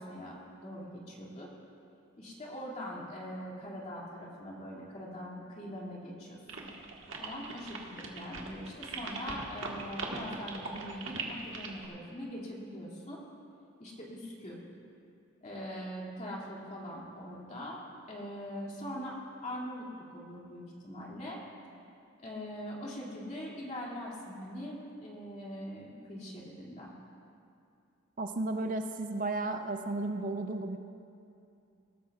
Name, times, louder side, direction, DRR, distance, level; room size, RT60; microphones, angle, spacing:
voice 1, 0.0-1.5 2.2-6.7 7.2-13.2 13.8-14.6 15.4-21.4 22.2-26.9, equal, 35° left, -4 dB, 2.4 m, -42 dB
sound 1, 6.5-11.9, right 4 dB, 70° right, 1.5 m, -40 dB
voice 2, 28.2-30.8, right 2 dB, 40° right, 6 dB, 0.5 m, -33 dB
21.5 x 13.0 x 2.4 m, 2.6 s
head